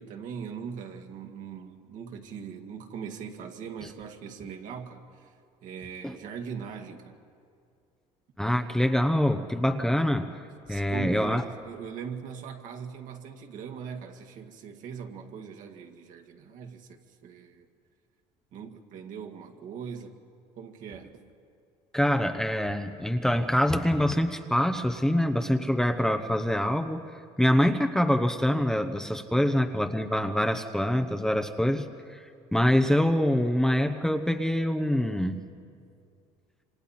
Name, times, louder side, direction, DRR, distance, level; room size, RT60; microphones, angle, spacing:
voice 1, 0.0-5.3 5.6-7.2 10.7-17.7 18.5-20.2 20.6-21.3 29.3-29.5, right 6 dB, 60° right, 3 dB, 2.1 m, -40 dB
voice 2, 8.4-10.3 10.7-11.4 21.9-27.0 27.4-35.4, equal, 5° left, 5 dB, 0.9 m, -25 dB
27.5 x 25.0 x 4.3 m, 2.4 s
supercardioid pair, 100°, 15 cm